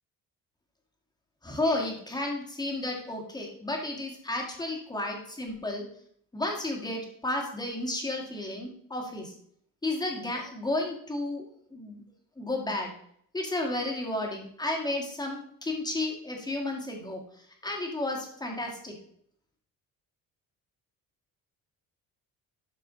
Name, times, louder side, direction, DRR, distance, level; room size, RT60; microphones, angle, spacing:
voice 1, 1.4-5.8 6.3-9.3 9.8-12.0 12.4-12.9 13.3-19.0, left 2 dB, 10° left, 0 dB, 1.9 m, -32 dB
12.5 x 4.9 x 3.8 m, 0.66 s
cardioid pair, 160°, 34 cm